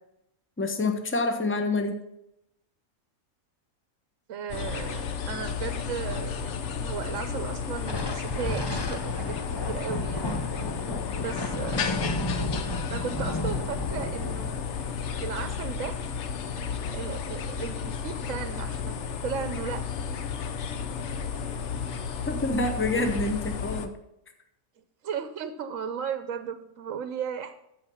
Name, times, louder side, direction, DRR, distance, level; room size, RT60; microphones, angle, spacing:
voice 1, 0.6-2.0 22.3-23.9, left 2 dB, 10° left, 6 dB, 0.9 m, -27 dB
voice 2, 4.3-10.4 11.2-12.0 12.9-14.6 15.2-15.9 16.9-20.1 25.0-27.5, right 7 dB, 70° right, 10 dB, 1.0 m, -35 dB
sound 1, 4.5-23.9, left 6 dB, 60° left, 1.0 m, -33 dB
Thunder, 7.8-16.5, left 2 dB, 30° left, 0.5 m, -34 dB
14.0 x 5.0 x 5.5 m, 0.83 s
omnidirectional pair, 1.5 m